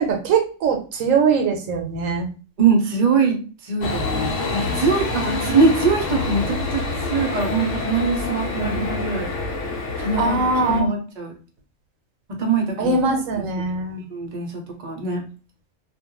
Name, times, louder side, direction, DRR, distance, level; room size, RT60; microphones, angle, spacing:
voice 1, 0.0-2.3 8.6-8.8 10.2-10.9 12.8-14.0, right 4 dB, 75° right, 3 dB, 1.0 m, -21 dB
voice 2, 2.6-6.8 7.1-9.3 10.0-10.4 10.7-11.3 12.4-13.0 14.1-15.2, right 4 dB, 45° right, 1 dB, 0.6 m, -22 dB
sound 1, 3.8-10.8, left 3 dB, 70° left, 0.9 m, -27 dB
2.4 x 2.2 x 2.9 m, 0.35 s
omnidirectional pair, 1.4 m